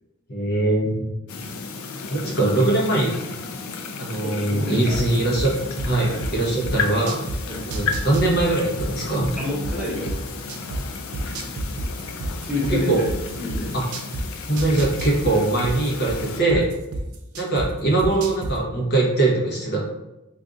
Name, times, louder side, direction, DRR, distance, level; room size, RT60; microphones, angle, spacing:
voice 1, 0.3-1.1 2.1-3.2 4.0-7.2 7.7-9.4 12.7-13.0 13.7-13.8 14.5-16.7 17.4-19.8, right 2 dB, 50° left, -3 dB, 0.9 m, -22 dB
sound 1, 1.3-16.4, left 4 dB, 75° left, 0.4 m, -33 dB
voice 2, 4.2-5.0 6.0-6.2 7.5-7.7 9.4-10.2 12.4-13.1 13.4-13.8 16.5-16.6, left 2 dB, 5° right, -6 dB, 0.7 m, -29 dB
sound 2, 4.9-7.4 7.7-10.8 11.1-14.2 14.6-17.7 18.0-18.5, right 2 dB, 90° right, 0.5 m, -29 dB
2.6 x 2.4 x 3.6 m, 0.96 s
head